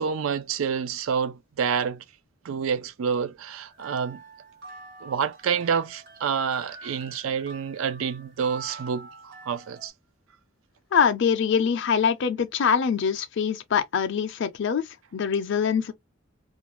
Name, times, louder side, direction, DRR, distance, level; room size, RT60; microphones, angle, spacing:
voice 1, 0.0-2.0 2.4-4.2 5.0-9.9, right 6 dB, 85° right, 0.4 m, -28 dB
sound 1, 3.7-9.9, right 3 dB, 55° right, 1.2 m, -45 dB
voice 2, 10.9-15.9, left 6 dB, 60° left, 0.4 m, -24 dB
2.4 x 2.1 x 2.9 m
head